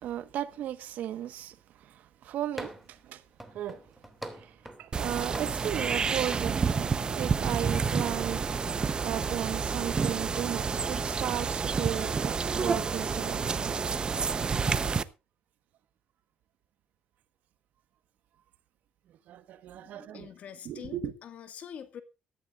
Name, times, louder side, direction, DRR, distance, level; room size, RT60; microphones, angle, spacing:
voice 1, 0.0-1.5 1.8-3.2 3.5-3.8 4.4-8.4 9.0-13.8 14.4-14.5 19.3-20.3 20.6-21.1, right 11 dB, 70° right, 1.3 m, -35 dB
sound 1, 2.6-3.0 3.4-4.9 5.3-6.0 6.3-6.6, right 1 dB, 5° right, 2.5 m, -43 dB
sound 2, 4.9-15.0, right 5 dB, 30° right, 0.9 m, -29 dB
voice 2, 19.7-22.0, left 8 dB, 55° left, 1.9 m, -45 dB
18.5 x 13.5 x 2.5 m
cardioid pair, 110°, 3 cm